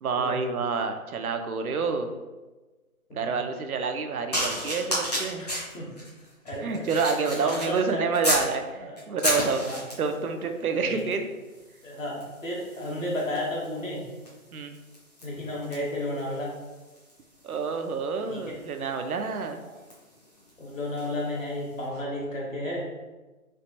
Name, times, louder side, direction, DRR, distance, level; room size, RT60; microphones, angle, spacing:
voice 1, 0.0-2.1 3.1-5.4 6.6-9.6 10.0-11.2 14.5-14.7 17.4-19.6, right 5 dB, 75° right, 6 dB, 0.6 m, -28 dB
voice 2, 3.1-3.4 5.4-5.9 6.4-6.9 7.3-8.0 8.7-9.0 9.6-9.8 10.8-11.1 11.8-14.0 15.2-16.5 18.3-18.6 19.6-19.7 20.6-22.9, left 1 dB, 60° left, -3 dB, 1.3 m, -33 dB
sound 1, 4.3-8.5 9.0-10.2 11.0-11.2 11.5-21.2 21.9-22.1, equal, 30° left, 0.7 m, -34 dB
3.3 x 3.0 x 2.8 m, 1.2 s
hypercardioid pair, 170°, 44 cm